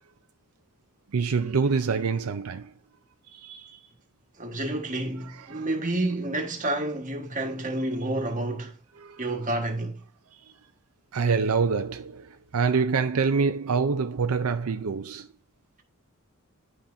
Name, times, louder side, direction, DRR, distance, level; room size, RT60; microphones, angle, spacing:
voice 1, 1.1-2.7 3.3-3.8 5.3-5.7 9.0-9.2 11.1-15.3, right 5 dB, 80° right, 0.5 m, -26 dB
voice 2, 4.4-8.7 9.2-10.0, right 1 dB, 35° right, 1.5 m, -29 dB
10.0 x 5.6 x 2.6 m
head